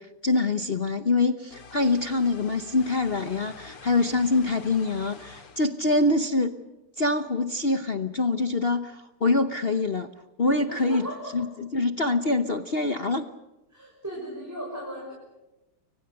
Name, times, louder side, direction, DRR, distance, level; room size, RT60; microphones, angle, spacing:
voice 1, 0.0-6.5 7.0-10.1 10.4-11.1 11.3-13.2, left 3 dB, 45° left, 10 dB, 0.7 m, -25 dB
sound 1, 1.5-5.7, left 5 dB, 85° left, 3.1 m, -46 dB
voice 2, 10.7-11.5 13.7-15.1, equal, 5° right, -2 dB, 5.9 m, -37 dB
30.0 x 24.0 x 6.6 m, 1.0 s
omnidirectional pair, 2.4 m